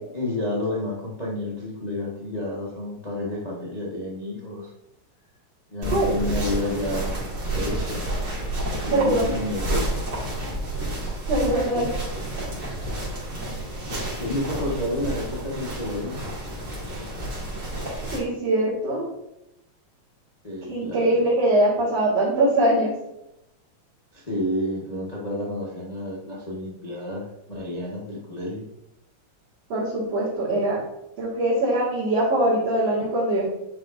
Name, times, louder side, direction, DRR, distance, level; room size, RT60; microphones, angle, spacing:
voice 1, 0.1-4.7 5.7-7.2 7.5-8.0 8.7-9.9 11.7-11.9 14.1-16.2 20.4-21.1 24.1-28.7, left 1 dB, 85° left, -5 dB, 0.3 m, -30 dB
sound 1, 5.8-18.2, right 1 dB, 40° right, 2.7 m, -30 dB
voice 2, 8.8-9.3 11.3-11.9 18.1-19.1 20.7-22.9 29.7-30.8 31.2-33.5, right 1 dB, 60° right, -11 dB, 3.1 m, -22 dB
9.2 x 5.1 x 2.6 m, 0.85 s
omnidirectional pair, 3.3 m